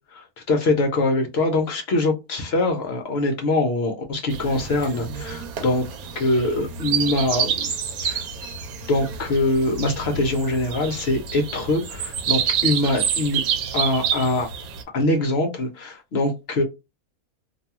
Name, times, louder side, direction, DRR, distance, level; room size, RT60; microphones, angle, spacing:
voice 1, 0.1-5.8 6.2-7.7 8.0-8.2 8.9-13.4 13.7-14.5 14.9-16.6, left 2 dB, 60° left, 0.7 m, -23 dB
sound 1, 4.3-14.8, right 7 dB, 90° right, 1.1 m, -28 dB
2.6 x 2.2 x 2.8 m
omnidirectional pair, 1.5 m